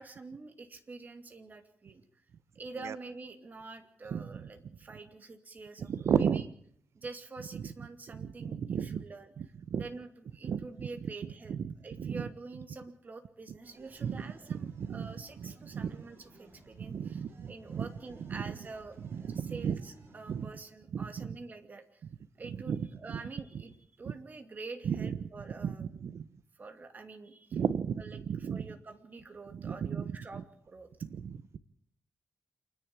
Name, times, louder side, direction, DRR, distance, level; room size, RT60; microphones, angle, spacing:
voice 1, 0.0-2.2 2.5-6.4 6.9-9.3 9.8-11.6 11.8-19.0 19.3-22.0 22.4-25.9 26.6-27.6 28.0-30.9, right 3 dB, 35° right, 5 dB, 2.6 m, -47 dB
voice 2, 4.1-4.4 5.9-6.4 7.5-7.6 8.1-9.0 9.7-9.8 10.4-10.9 11.5-12.2 14.0-14.2 14.5-15.1 15.4-15.9 16.8-17.9 18.3-18.4 19.1-19.8 20.3-20.5 20.9-21.3 22.7-23.2 24.1-24.2 24.8-25.2 25.6-26.2 27.5-28.7 29.5-30.0 30.3-30.4 31.0-31.6, right 7 dB, 75° right, 16 dB, 0.9 m, -34 dB
sound 1, 13.6-20.5, right 2 dB, 50° right, 5.4 m, -57 dB
28.0 x 10.5 x 8.9 m, 0.65 s
wide cardioid pair, 125°, 5 cm